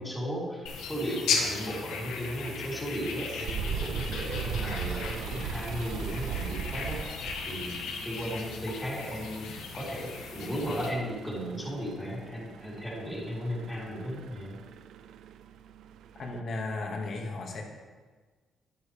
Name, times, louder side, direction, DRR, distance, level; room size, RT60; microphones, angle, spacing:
voice 1, 0.0-7.8 8.1-14.6, equal, 5° left, -7 dB, 3.8 m, -35 dB
sound 1, 0.7-10.9, left 5 dB, 90° left, 1.3 m, -36 dB
sound 2, 2.9-16.4, right 7 dB, 80° right, 0.4 m, -40 dB
voice 2, 16.2-17.6, left 2 dB, 55° left, 0 dB, 2.0 m, -35 dB
11.0 x 10.0 x 3.5 m, 1.4 s
cardioid pair, 90°, 0 cm